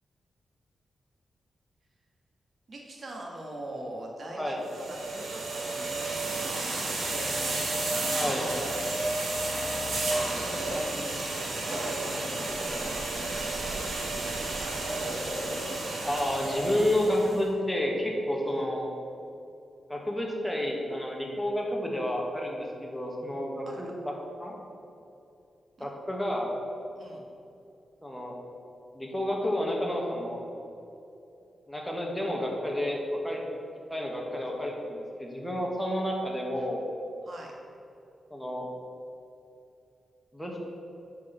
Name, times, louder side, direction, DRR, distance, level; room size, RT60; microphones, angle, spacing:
voice 1, 2.7-8.8 9.3-14.8 18.4-18.7 23.7-23.8 25.8-25.9 26.9-27.2 37.2-37.5, right 1 dB, 45° right, -1 dB, 1.6 m, -43 dB
voice 2, 4.4-4.7 8.1-8.4 16.0-18.9 19.9-24.1 24.4-24.5 25.8-26.5 28.0-28.4 28.9-30.4 31.7-33.4 33.9-36.8 38.3-38.7 40.3-40.6, left 1 dB, 5° left, -1 dB, 1.5 m, -30 dB
sound 1, 4.7-17.4, right 2 dB, 85° right, 1.9 m, -32 dB
8.5 x 4.6 x 6.9 m, 2.7 s
wide cardioid pair, 120°, 0 cm